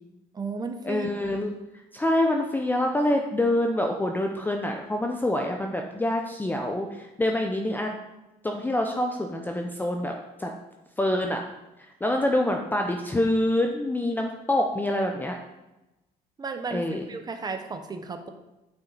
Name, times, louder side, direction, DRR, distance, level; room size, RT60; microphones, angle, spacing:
voice 1, 0.3-1.1 16.4-16.8 17.1-18.3, right 4 dB, 25° right, 6 dB, 0.8 m, -33 dB
voice 2, 0.8-1.5 1.9-7.9 8.4-10.5 11.0-11.4 12.0-15.4 16.7-17.1, left 1 dB, 10° left, 2 dB, 0.5 m, -26 dB
8.8 x 4.2 x 4.0 m, 0.99 s
cardioid pair, 110°, 17 cm